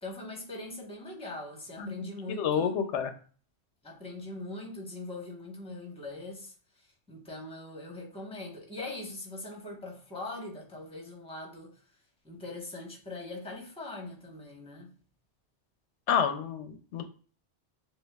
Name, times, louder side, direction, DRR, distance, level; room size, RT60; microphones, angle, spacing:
voice 1, 0.0-2.8 3.8-11.8 12.2-14.9, left 2 dB, 5° left, 0.9 m, -41 dB
voice 2, 2.4-3.1 16.1-17.0, left 7 dB, 85° left, 0.9 m, -29 dB
6.4 x 2.4 x 2.3 m
omnidirectional pair, 1.2 m